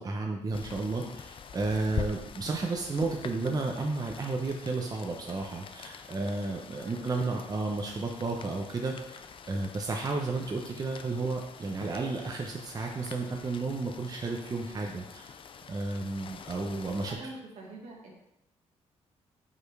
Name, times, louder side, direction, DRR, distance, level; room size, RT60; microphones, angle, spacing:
voice 1, 0.0-15.4 15.7-17.2, right 3 dB, 35° right, 1 dB, 0.8 m, -32 dB
Rain, 0.5-17.1, left 6 dB, 50° left, 0.5 m, -45 dB
voice 2, 17.1-18.2, right 2 dB, 75° right, -1 dB, 1.7 m, -45 dB
5.5 x 4.2 x 4.8 m, 0.84 s
cardioid pair, 90°, 12 cm